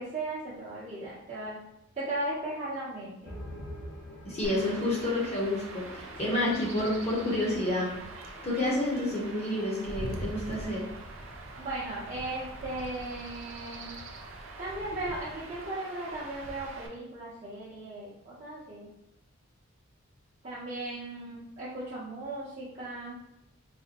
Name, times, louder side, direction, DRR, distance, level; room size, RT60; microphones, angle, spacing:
voice 1, 0.0-1.6 2.0-3.6 6.2-6.6 11.6-13.9 14.6-18.9 20.4-23.2, right 2 dB, 35° right, -10 dB, 0.8 m, -37 dB
sound 1, 3.2-9.3, left 1 dB, 75° left, 0.7 m, -47 dB
voice 2, 4.2-8.0 8.4-10.9, left 1 dB, 30° left, -4 dB, 0.9 m, -29 dB
Chirp tweet / Wind / Stream, 4.4-16.9, right 2 dB, 70° right, 0.5 m, -43 dB
4.0 x 2.1 x 2.9 m, 0.85 s
head